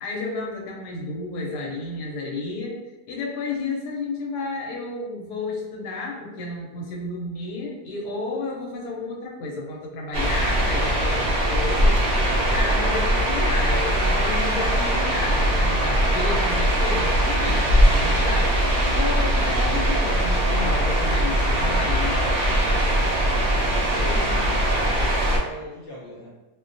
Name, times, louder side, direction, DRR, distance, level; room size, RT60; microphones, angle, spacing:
voice 1, 0.0-2.8 3.1-22.1, left 3 dB, 90° left, -1 dB, 1.2 m, -32 dB
sound 1, 10.1-25.4, right 1 dB, 80° right, 0.5 m, -21 dB
voice 2, 22.0-23.6 23.9-26.3, left 1 dB, 60° left, -6 dB, 0.9 m, -38 dB
2.6 x 2.2 x 2.5 m, 1.1 s
omnidirectional pair, 1.7 m